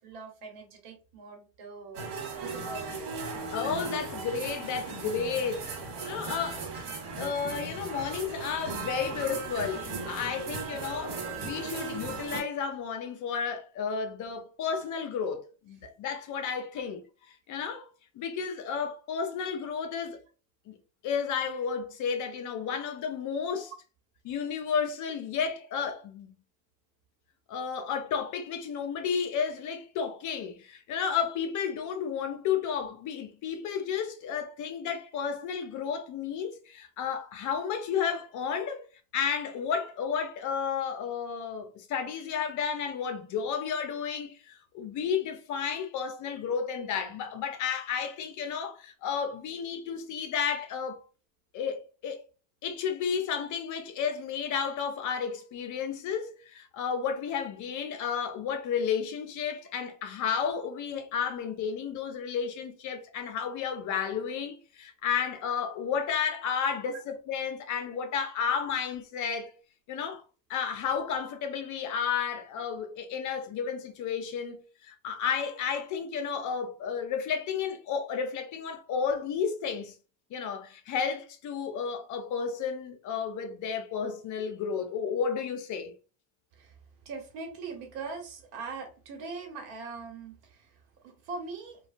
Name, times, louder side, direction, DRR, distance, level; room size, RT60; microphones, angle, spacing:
voice 1, 0.0-3.2 86.5-86.8 87.0-91.8, right 4 dB, 60° right, 1.2 m, -42 dB
sound 1, 1.9-12.4, right 4 dB, 85° right, 1.2 m, -37 dB
voice 2, 3.5-5.7 6.0-6.7 7.1-17.0 17.5-17.9 18.1-20.2 20.7-20.8 21.0-23.7 24.2-26.4 27.5-38.8 39.1-51.0 51.5-52.2 52.6-69.5 69.9-70.2 70.5-79.9 80.3-85.9, left 7 dB, 45° left, 0.6 m, -32 dB
3.1 x 2.3 x 2.5 m
supercardioid pair, 120°, 42 cm